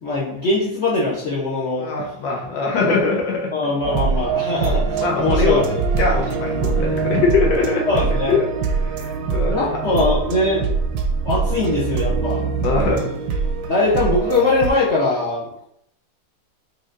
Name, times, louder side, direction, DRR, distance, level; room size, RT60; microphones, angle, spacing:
voice 1, 0.0-1.8 3.5-5.9 7.9-8.4 9.5-10.7 11.2-12.4 13.7-15.6, left 2 dB, 60° left, -6 dB, 0.7 m, -21 dB
voice 2, 1.8-3.5 4.7-5.6 6.0-7.8 8.3-8.5 8.8-9.8 12.6-13.1, left 4 dB, 85° left, -1 dB, 1.6 m, -22 dB
sound 1, 3.8-14.7, right 5 dB, 70° right, 1.0 m, -23 dB
4.9 x 2.8 x 2.5 m, 0.74 s
omnidirectional pair, 2.0 m